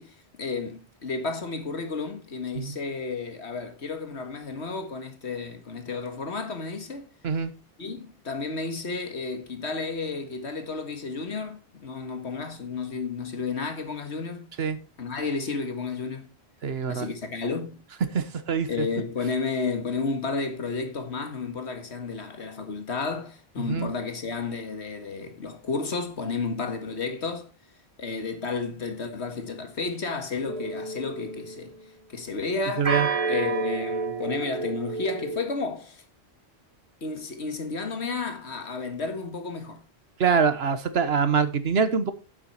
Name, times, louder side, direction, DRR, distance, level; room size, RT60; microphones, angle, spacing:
voice 1, 0.0-7.1 7.8-14.5 15.0-16.3 16.9-17.8 18.7-27.5 28.0-31.7 32.1-32.9 33.3-36.0 37.0-39.8, left 4 dB, 90° left, 1.9 m, -32 dB
voice 2, 16.6-17.1 18.1-18.7 23.6-23.9 32.8-33.1 40.2-42.1, right 6 dB, 70° right, 1.3 m, -24 dB
sound 1, 30.5-31.6 32.8-35.4, right 4 dB, 35° right, 1.3 m, -30 dB
9.6 x 7.6 x 4.3 m
omnidirectional pair, 1.1 m